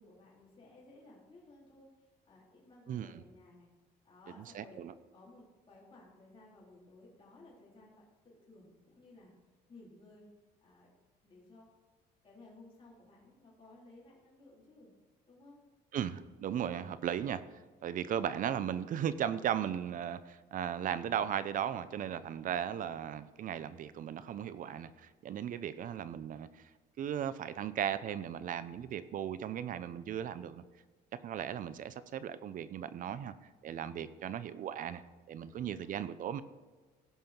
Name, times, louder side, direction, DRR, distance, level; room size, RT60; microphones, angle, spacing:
voice 1, 0.0-3.7 4.0-4.8 5.1-9.3 9.7-10.3 10.6-10.9 11.2-11.7 12.2-14.9 15.3-15.6 35.4-36.1, left 2 dB, 30° left, -6 dB, 3.9 m, -58 dB
voice 2, 2.9-3.2 4.5-4.9 15.9-17.4 17.8-26.7 27.0-30.6 31.1-33.3 33.6-35.0 35.3-36.4, right 9 dB, 55° right, 14 dB, 0.6 m, -36 dB
16.5 x 5.6 x 4.5 m, 1.3 s
cardioid pair, 110°, 17 cm